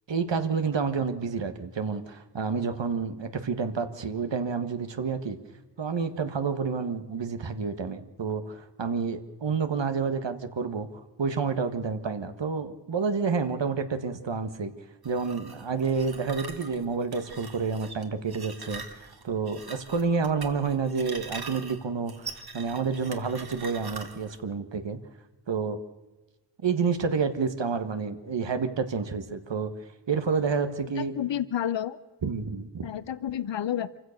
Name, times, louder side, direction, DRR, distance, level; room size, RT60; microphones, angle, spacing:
voice 1, 0.1-5.4 5.8-14.7 15.0-25.0 25.5-25.8 26.6-29.7 30.1-31.1 32.2-32.9, right 5 dB, 80° right, 9 dB, 1.6 m, -29 dB
sound 1, 15.0-24.4, right 4 dB, 60° right, 2.0 m, -43 dB
voice 2, 31.0-32.0 32.8-34.0, left 10 dB, 80° left, 16 dB, 0.8 m, -30 dB
26.5 x 15.5 x 6.6 m, 1.1 s
wide cardioid pair, 75°, 43 cm